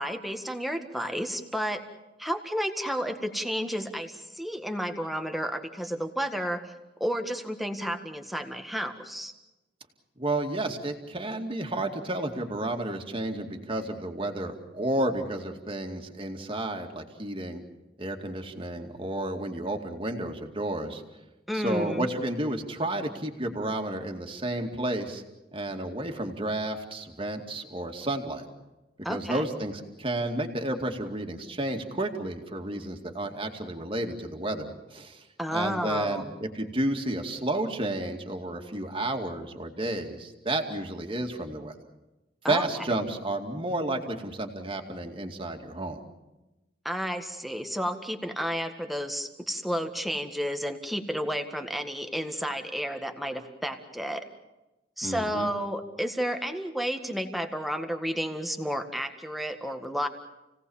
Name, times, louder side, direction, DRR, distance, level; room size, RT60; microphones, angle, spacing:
voice 1, 0.0-1.8 2.2-6.7 7.0-9.3 21.5-22.1 29.0-29.4 35.4-36.3 42.4-42.6 46.9-54.3 55.0-60.1, equal, ahead, 5 dB, 1.7 m, -31 dB
voice 2, 10.2-17.6 18.0-21.0 21.5-25.2 25.5-28.4 29.1-35.2 35.5-41.8 42.5-46.0 55.0-55.5, right 1 dB, 30° right, 3 dB, 2.4 m, -31 dB
29.0 x 18.0 x 7.2 m, 1.0 s
head